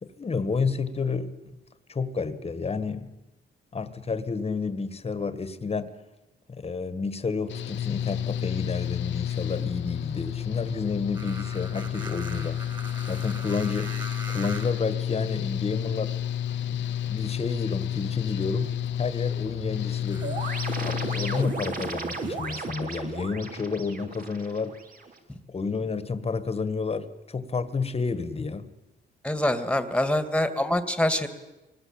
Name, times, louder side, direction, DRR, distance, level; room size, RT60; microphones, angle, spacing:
voice 1, 0.0-1.3 1.9-3.1 3.7-6.0 6.5-12.6 13.1-14.0 14.3-16.2 16.7-20.5 20.9-24.8 25.5-28.7, left 4 dB, 30° left, 1.9 m, -30 dB
Engine / Mechanical fan, 7.5-21.4, left 10 dB, 70° left, 0.8 m, -31 dB
sound 1, 11.1-14.9 15.9-16.0 20.0-22.7, right 3 dB, 20° right, 4.5 m, -43 dB
sound 2, 20.2-25.2, right 4 dB, 45° right, 3.6 m, -35 dB
voice 2, 29.2-31.3, left 1 dB, 5° left, 2.4 m, -25 dB
24.0 x 19.5 x 8.9 m
cardioid pair, 90°, 20 cm